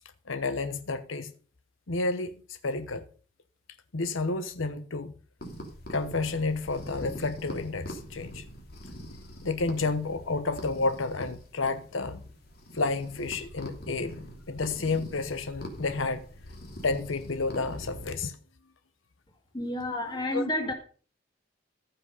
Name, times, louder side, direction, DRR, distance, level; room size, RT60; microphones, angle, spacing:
voice 1, 0.3-1.3 1.9-3.1 3.9-5.1 5.9-8.4 9.4-12.2 12.7-16.3 16.8-18.4 20.3-20.4, left 3 dB, 85° left, 1.0 m, -30 dB
sound 1, 5.4-18.1, equal, 50° left, 3.1 m, -43 dB
voice 2, 19.5-20.7, left 1 dB, 20° left, 2.2 m, -30 dB
14.5 x 5.9 x 5.4 m
head